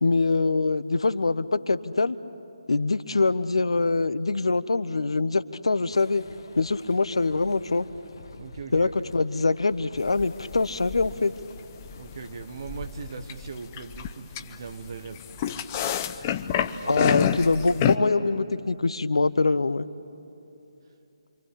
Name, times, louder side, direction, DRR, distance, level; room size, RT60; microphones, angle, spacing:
voice 1, 0.0-2.2 2.7-6.2 6.6-7.9 8.7-11.3 16.8-19.9, left 3 dB, 70° left, 15 dB, 0.9 m, -24 dB
sound 1, 5.9-13.2, left 3 dB, 50° left, 1.6 m, -48 dB
voice 2, 8.4-8.9 12.0-15.6 16.8-17.0, right 5 dB, 45° right, 8 dB, 1.5 m, -39 dB
sound 2, 10.0-18.0, left 9 dB, 25° left, 0.8 m, -29 dB
27.0 x 25.0 x 8.5 m, 3.0 s
figure-of-eight pair, 150°, 3 cm